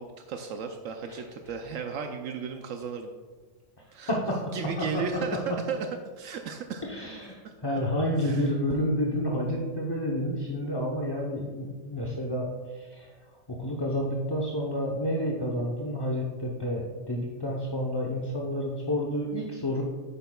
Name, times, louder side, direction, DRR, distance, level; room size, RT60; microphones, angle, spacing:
voice 1, 0.0-3.1 3.9-4.1 4.5-5.9 6.2-6.8 8.2-8.5, right 6 dB, 80° right, 5 dB, 1.0 m, -35 dB
voice 2, 4.0-5.6 6.8-13.1 13.5-19.8, equal, 25° left, -2 dB, 0.6 m, -30 dB
10.5 x 8.5 x 2.3 m, 1.4 s
omnidirectional pair, 1.4 m